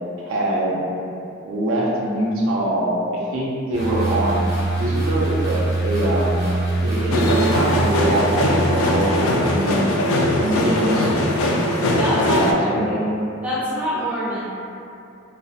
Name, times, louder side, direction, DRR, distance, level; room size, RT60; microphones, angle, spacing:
voice 1, 0.2-0.8 1.4-4.5 4.8-6.4 6.8-9.8 10.4-11.1 12.4-13.1, right 1 dB, 75° right, -5 dB, 0.5 m, -23 dB
sound 1, 3.7-9.1, right 2 dB, 50° left, 0.6 m, -24 dB
sound 2, 7.1-12.5, left 1 dB, 80° left, 0.3 m, -20 dB
voice 2, 11.9-12.4 12.8-12.9 13.4-14.5, equal, 5° right, -9 dB, 0.4 m, -25 dB
2.3 x 2.0 x 2.7 m, 2.6 s
head